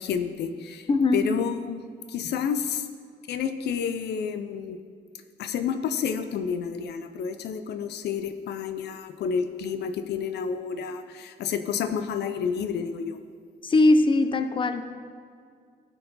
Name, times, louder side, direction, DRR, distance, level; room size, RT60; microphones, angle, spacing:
voice 1, 0.0-1.8 2.1-2.9 3.3-4.8 5.4-13.2, left 7 dB, 75° left, 8 dB, 0.5 m, -30 dB
voice 2, 0.9-1.2 13.6-14.9, left 2 dB, 30° left, 9 dB, 0.6 m, -20 dB
12.0 x 4.6 x 4.0 m, 2.1 s
cardioid pair, 70°, 17 cm